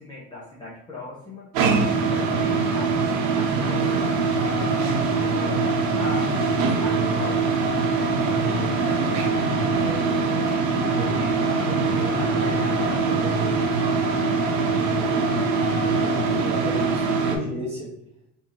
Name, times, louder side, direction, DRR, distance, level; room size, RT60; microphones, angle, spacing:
voice 1, 0.0-1.5 1.8-4.1 4.4-6.2 6.8-11.8 12.1-13.6, left 2 dB, 15° left, -6 dB, 0.5 m, -39 dB
sound 1, 1.5-17.4, right 4 dB, 80° right, 0.7 m, -23 dB
sound 2, 3.6-16.4, left 8 dB, 70° left, 0.7 m, -37 dB
voice 2, 14.5-17.9, equal, 20° right, -8 dB, 1.3 m, -34 dB
3.9 x 2.6 x 2.9 m, 0.78 s
cardioid pair, 175°, 34 cm